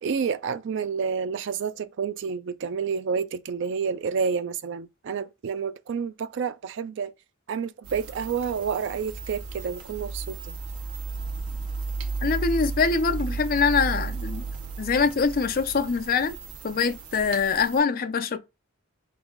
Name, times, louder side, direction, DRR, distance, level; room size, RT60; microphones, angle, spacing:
voice 1, 0.0-7.1 7.5-10.4, right 6 dB, 55° right, 0.3 m, -29 dB
sound 1, 7.8-17.8, right 4 dB, 75° right, 0.7 m, -34 dB
voice 2, 12.2-14.4 14.8-16.4 16.6-18.4, left 5 dB, 40° left, 0.4 m, -24 dB
3.8 x 2.3 x 3.8 m
head